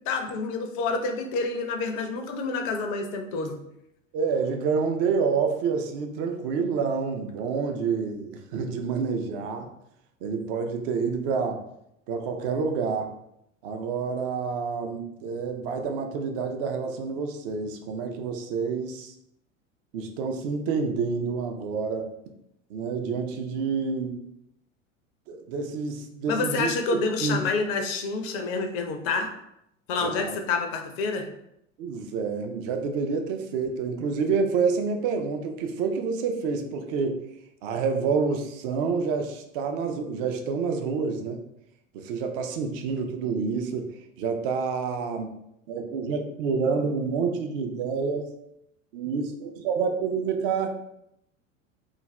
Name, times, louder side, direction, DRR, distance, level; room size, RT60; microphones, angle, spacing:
voice 1, 0.1-3.5 26.3-29.3 29.9-31.3, left 4 dB, 35° left, 5 dB, 0.4 m, -28 dB
voice 2, 4.1-9.7 10.2-11.6 12.1-13.1 13.6-19.1 19.9-22.1 22.7-24.2 25.3-26.7 27.2-27.4 30.0-30.4 31.8-37.2 37.6-41.4 41.9-43.9 44.2-45.3 45.7-48.3 48.9-50.7, right 5 dB, 45° right, 5 dB, 0.5 m, -28 dB
2.5 x 2.2 x 3.1 m, 0.80 s
figure-of-eight pair, 80°, 40 cm